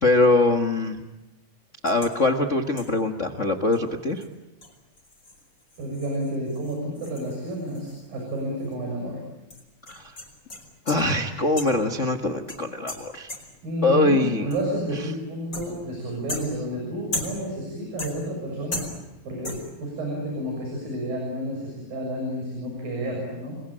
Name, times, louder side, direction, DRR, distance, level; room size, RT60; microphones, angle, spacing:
voice 1, 0.0-1.0 1.8-4.2 9.9-10.1 10.9-13.3 13.8-14.5, left 2 dB, 90° left, 5 dB, 0.6 m, -22 dB
sound 1, 1.9-2.2 2.8-3.1 3.7-3.8 4.2-4.3 4.6-8.4 8.6-8.7 9.5-11.2 11.6-11.9 12.5-13.7 14.5-14.9 15.5-15.9 16.3-17.6 18.0-18.5 18.7-19.2 19.4-19.8, left 2 dB, 25° left, 5.1 m, -37 dB
voice 2, 5.8-9.2 13.6-18.8 19.2-23.6, right 1 dB, 75° right, 0 dB, 8.5 m, -30 dB
29.0 x 22.0 x 8.8 m, 1.0 s
omnidirectional pair, 4.0 m